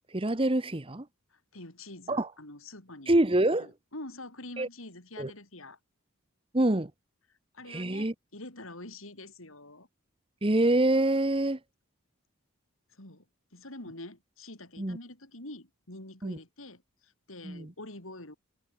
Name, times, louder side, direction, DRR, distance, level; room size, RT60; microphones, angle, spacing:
voice 1, 0.1-1.1 2.1-2.3 3.1-3.7 4.6-4.7 5.2-5.3 6.5-6.9 7.7-8.1 10.4-11.6 14.8-15.0 16.2-16.4 17.4-17.7, right 1 dB, 25° right, 1.1 m, -26 dB
voice 2, 1.3-3.1 3.6-5.8 7.5-9.9 12.9-13.2 13.5-18.3, left 2 dB, 70° left, 6.4 m, -46 dB
head